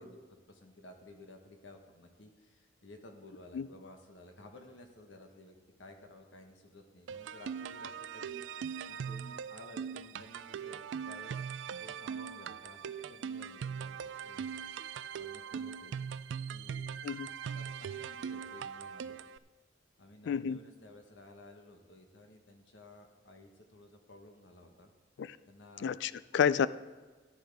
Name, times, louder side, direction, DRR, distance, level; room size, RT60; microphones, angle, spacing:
voice 1, 0.0-8.4 8.9-11.4 11.8-14.5 15.2-16.0 16.5-17.0 17.5-19.2 20.0-24.9 25.5-25.9, left 1 dB, 85° left, 4 dB, 1.3 m, -54 dB
sound 1, 7.1-19.4, right 7 dB, 70° right, 0.3 m, -41 dB
voice 2, 20.3-20.6 25.2-25.4 25.8-26.7, left 7 dB, 65° left, 17 dB, 0.3 m, -30 dB
14.0 x 9.2 x 3.5 m, 1.3 s
head